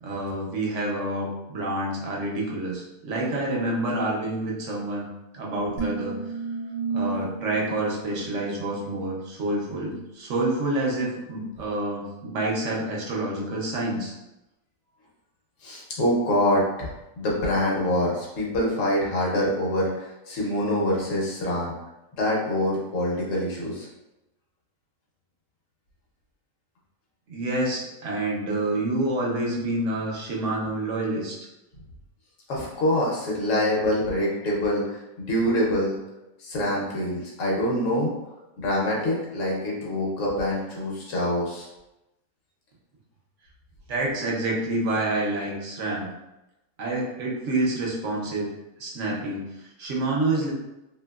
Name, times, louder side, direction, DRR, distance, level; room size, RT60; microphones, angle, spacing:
voice 1, 0.0-5.1 5.3-6.2 6.9-14.1 27.3-31.4 43.9-46.1 46.8-48.5 48.8-50.5, right 2 dB, 60° right, -3 dB, 0.9 m, -28 dB
sound 1, 5.8-9.1, right 4 dB, 80° right, 0.5 m, -32 dB
voice 2, 15.6-16.9 17.2-21.7 22.2-23.9 32.5-36.0 36.4-38.1 38.6-41.7, left 1 dB, 65° left, -4 dB, 1.2 m, -25 dB
2.9 x 2.8 x 2.3 m, 0.96 s
omnidirectional pair, 1.5 m